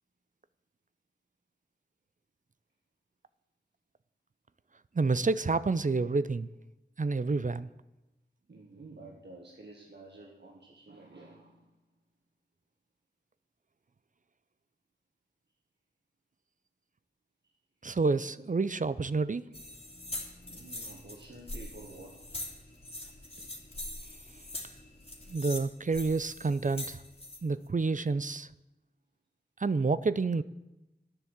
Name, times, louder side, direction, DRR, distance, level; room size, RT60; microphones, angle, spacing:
voice 1, 4.9-6.5 7.0-7.7 17.8-19.5 25.3-27.0 27.4-28.5 29.6-30.4, right 3 dB, 50° right, 16 dB, 0.5 m, -29 dB
voice 2, 8.5-11.7 20.4-22.2, right 2 dB, 90° right, 0 dB, 1.5 m, -50 dB
sound 1, 19.5-27.4, left 1 dB, 35° left, 2.5 m, -43 dB
10.5 x 10.0 x 7.4 m, 0.96 s
wide cardioid pair, 55°, 17 cm